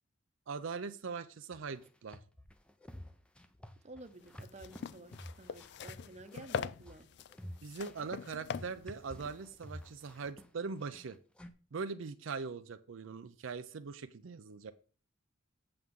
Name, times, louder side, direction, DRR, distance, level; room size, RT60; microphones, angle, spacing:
voice 1, 0.5-2.2 7.6-11.2 11.7-14.7, right 4 dB, 80° right, 10 dB, 0.5 m, -41 dB
sound 1, 1.5-11.5, equal, 5° left, 0.5 m, -50 dB
voice 2, 3.8-7.1, right 2 dB, 35° right, 8 dB, 0.8 m, -52 dB
sound 2, 4.2-10.3, left 7 dB, 60° left, 0.3 m, -43 dB
7.8 x 7.0 x 3.7 m, 0.39 s
head